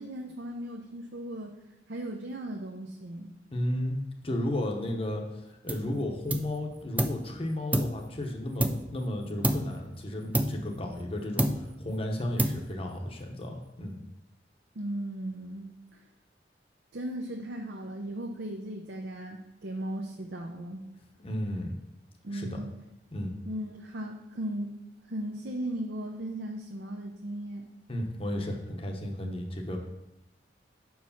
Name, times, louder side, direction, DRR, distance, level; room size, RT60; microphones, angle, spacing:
voice 1, 0.0-1.5 1.9-3.3 14.8-16.0 16.9-20.8 22.2-22.7 23.5-24.7 25.1-27.7, right 1 dB, 70° right, 1 dB, 0.7 m, -37 dB
voice 2, 3.5-14.0 21.2-21.7 22.3-22.6 23.1-23.3 27.9-29.8, left 1 dB, 35° left, 2 dB, 1.0 m, -33 dB
sound 1, 5.7-6.0 6.3-7.3 7.7-9.1 9.4-9.8 10.3-11.1 11.4-11.9 12.4-12.9, right 1 dB, 10° right, 0.3 m, -30 dB
6.1 x 4.7 x 5.6 m, 0.91 s
head